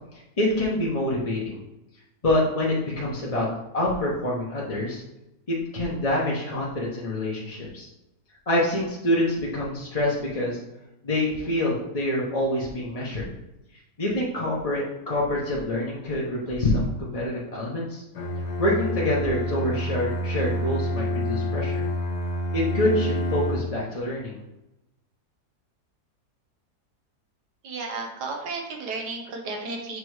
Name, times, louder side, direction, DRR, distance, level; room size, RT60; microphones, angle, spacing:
voice 1, 0.4-1.6 2.2-3.5 3.7-5.0 5.5-7.9 8.5-10.6 11.0-13.3 14.0-18.0 18.6-21.8 22.5-24.4, left 1 dB, 25° left, -5 dB, 0.9 m, -26 dB
Bowed string instrument, 18.1-23.8, left 1 dB, 80° left, 1.7 m, -28 dB
voice 2, 27.6-30.0, right 3 dB, 90° right, 2 dB, 1.6 m, -33 dB
6.7 x 3.0 x 4.7 m, 0.92 s
omnidirectional pair, 1.7 m